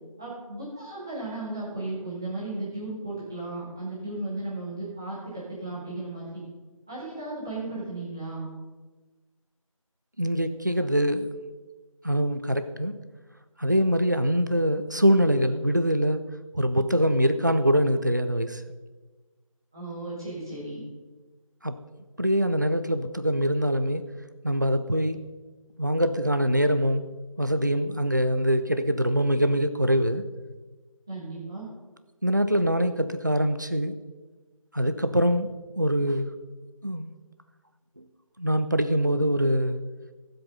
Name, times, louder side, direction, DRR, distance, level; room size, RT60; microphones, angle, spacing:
voice 1, 0.2-6.3 6.9-8.5 19.7-20.8 31.1-31.6, right 2 dB, 5° right, -8 dB, 1.2 m, -35 dB
voice 2, 10.2-11.3 12.0-12.9 13.6-16.2 16.5-18.6 21.6-21.8 22.2-24.1 24.4-25.2 25.8-27.0 27.4-30.2 32.2-34.0 34.7-36.3 36.8-37.1 38.0-38.1 38.4-39.8, equal, 35° right, 10 dB, 0.5 m, -24 dB
17.0 x 7.8 x 3.9 m, 1.3 s
figure-of-eight pair, 170°, 18 cm